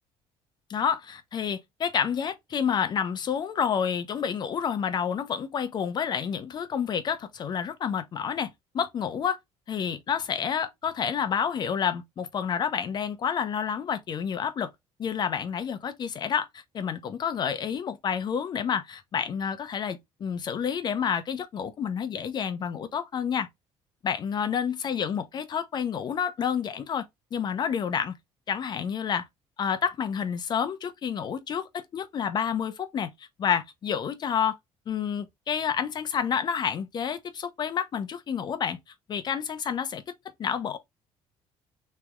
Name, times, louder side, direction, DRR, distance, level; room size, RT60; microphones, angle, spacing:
voice 1, 0.7-9.4 9.7-14.7 15.0-23.5 24.0-27.1 27.3-28.1 28.5-29.3 29.6-34.6 34.9-38.8 39.1-40.0 40.4-40.8, left 7 dB, 40° left, 0.7 m, -29 dB
3.3 x 3.0 x 3.5 m
cardioid pair, 130°, 11 cm